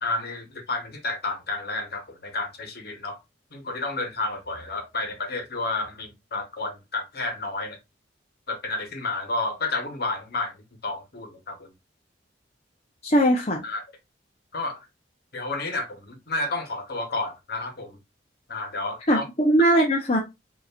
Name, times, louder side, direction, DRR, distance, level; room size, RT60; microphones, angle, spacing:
voice 1, 0.0-3.2 3.5-7.8 8.5-10.6 10.8-11.7 13.6-13.8 14.5-14.8 15.3-18.0 18.5-19.2, left 2 dB, 55° left, 1.3 m, -31 dB
voice 2, 13.0-13.6 19.1-20.2, right 1 dB, 35° left, 0.7 m, -20 dB
5.5 x 2.9 x 2.4 m
head